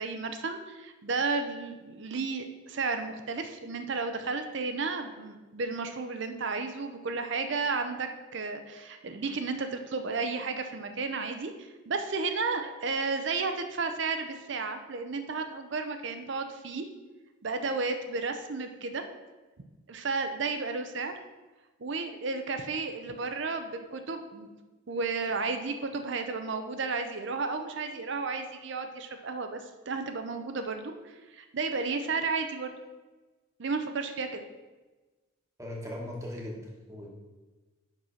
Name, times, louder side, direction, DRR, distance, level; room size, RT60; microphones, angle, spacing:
voice 1, 0.0-16.8 17.4-19.0 19.9-21.1 21.8-24.6 24.9-29.6 29.9-32.7 33.6-34.4, right 4 dB, 55° right, 7 dB, 0.6 m, -33 dB
voice 2, 35.6-36.6 36.9-37.1, left 1 dB, 15° right, -1 dB, 1.2 m, -38 dB
5.4 x 5.3 x 5.6 m, 1.2 s
head